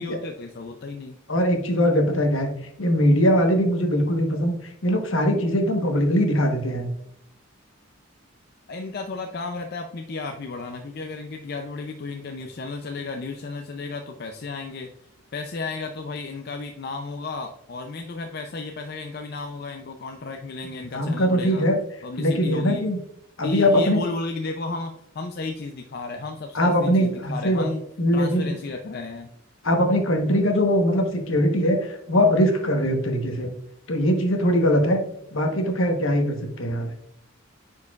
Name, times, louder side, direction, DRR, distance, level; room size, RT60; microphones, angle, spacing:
voice 1, 0.0-1.2 8.7-14.9 15.3-21.7 22.0-22.9 23.4-27.8 28.1-29.3, left 3 dB, 50° left, 4 dB, 0.4 m, -33 dB
voice 2, 1.3-2.5 2.8-4.6 4.8-6.9 20.9-21.8 22.2-23.0 23.4-24.0 26.5-27.7 28.0-28.5 29.6-33.5 33.9-35.0 35.3-36.9, equal, 70° left, 4 dB, 1.1 m, -21 dB
9.5 x 4.6 x 2.4 m, 0.72 s
head